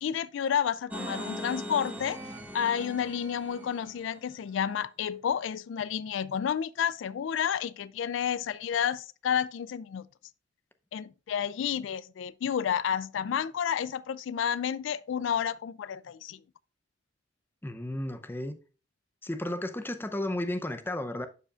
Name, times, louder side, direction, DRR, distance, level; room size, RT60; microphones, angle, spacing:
voice 1, 0.0-2.2 2.5-10.0 10.9-16.4, left 8 dB, 75° left, 0.3 m, -30 dB
sound 1, 0.9-4.2, equal, 10° right, 1.2 m, -40 dB
voice 2, 17.6-18.6 19.2-21.3, left 1 dB, 10° left, 0.6 m, -33 dB
11.5 x 4.9 x 2.4 m
head